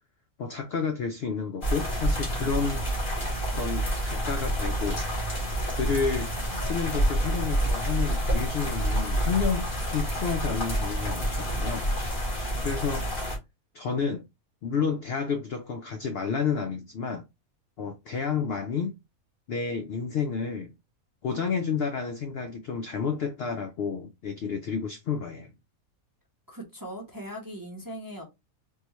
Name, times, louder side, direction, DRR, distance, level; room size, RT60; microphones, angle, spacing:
voice 1, 0.4-2.8 3.5-5.0 5.7-6.3 6.6-11.9 12.6-13.1 13.7-14.2 14.6-17.2 17.8-18.9 19.5-20.7 21.2-25.5, left 5 dB, 70° left, 0.6 m, -30 dB
sound 1, 1.6-13.4, right 1 dB, 35° left, 1.5 m, -28 dB
voice 2, 26.5-28.2, equal, 20° right, 0.6 m, -39 dB
3.7 x 2.3 x 2.9 m
omnidirectional pair, 1.5 m